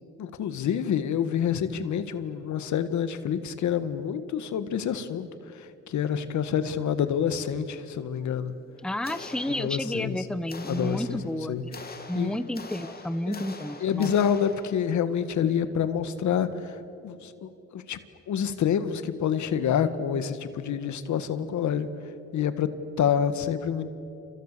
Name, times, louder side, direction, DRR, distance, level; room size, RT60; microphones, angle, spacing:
voice 1, 0.2-5.3 5.9-8.5 9.6-10.2 10.7-11.2 11.5-11.6 12.1-12.3 13.3-13.4 13.8-16.8 17.0-18.0 18.3-21.9 22.3-22.7 23.0-23.9, left 8 dB, 70° left, 11 dB, 1.8 m, -27 dB
voice 2, 8.8-11.7 12.1-14.1, left 1 dB, 5° left, 13 dB, 1.0 m, -31 dB
sound 1, 9.0-10.1 10.5-15.0, left 3 dB, 30° left, 3.0 m, -43 dB
29.5 x 27.5 x 6.9 m, 2.9 s
cardioid pair, 90°, 30 cm